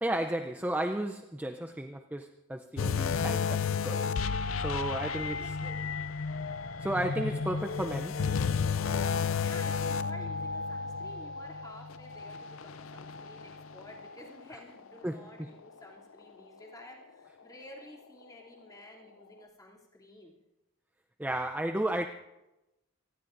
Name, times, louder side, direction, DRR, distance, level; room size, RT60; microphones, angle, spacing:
voice 1, 0.0-4.0 4.6-5.8 6.8-8.2 15.0-15.5 21.2-22.1, right 1 dB, 10° right, 0.5 m, -33 dB
sound 1, 2.8-14.2 14.6-14.8 15.4-15.5, left 5 dB, 80° left, 0.5 m, -32 dB
voice 2, 4.8-6.1 7.3-7.4 9.4-20.3, left 1 dB, 20° left, 2.8 m, -52 dB
27.0 x 19.5 x 2.6 m
head